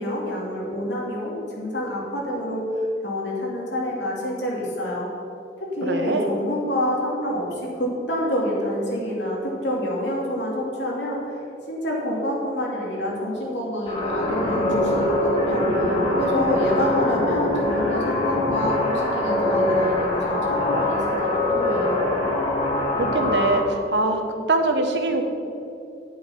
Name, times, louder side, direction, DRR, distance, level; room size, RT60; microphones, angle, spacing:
voice 1, 0.0-2.6 3.0-5.1 5.6-7.5 7.8-11.4 11.7-15.6 16.1-22.1, equal, 90° left, -3 dB, 2.9 m, -27 dB
voice 2, 5.8-6.3 23.0-24.2 24.5-25.3, right 2 dB, 80° right, 5 dB, 1.3 m, -22 dB
sound 1, 13.9-23.6, left 1 dB, 35° left, 3.0 m, -23 dB
10.5 x 8.4 x 6.0 m, 2.7 s
head